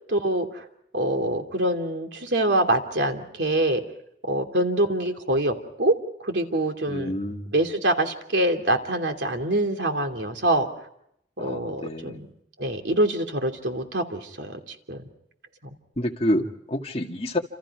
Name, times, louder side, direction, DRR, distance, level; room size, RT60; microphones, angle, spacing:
voice 1, 0.1-0.6 0.9-3.8 4.2-5.9 6.2-7.1 7.5-10.7 11.4-12.3 12.6-15.0, right 1 dB, 90° right, 4 dB, 2.8 m, -25 dB
voice 2, 6.9-7.5 11.4-12.2 16.0-17.4, left 1 dB, 35° left, 2 dB, 2.1 m, -28 dB
29.0 x 28.0 x 4.8 m, 0.75 s
head